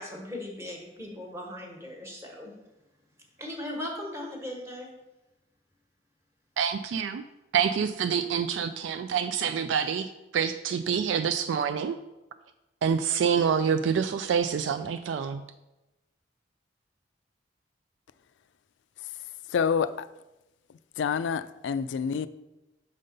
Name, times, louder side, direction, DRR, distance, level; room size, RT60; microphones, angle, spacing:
voice 1, 0.0-2.5 3.4-4.9, left 1 dB, 15° right, 1.3 m, -38 dB
voice 2, 6.6-7.3 7.5-12.0 12.8-15.4, right 7 dB, 80° right, 0.3 m, -27 dB
voice 3, 19.5-20.1 21.0-22.3, left 6 dB, 75° left, 0.3 m, -27 dB
6.6 x 3.8 x 5.2 m
head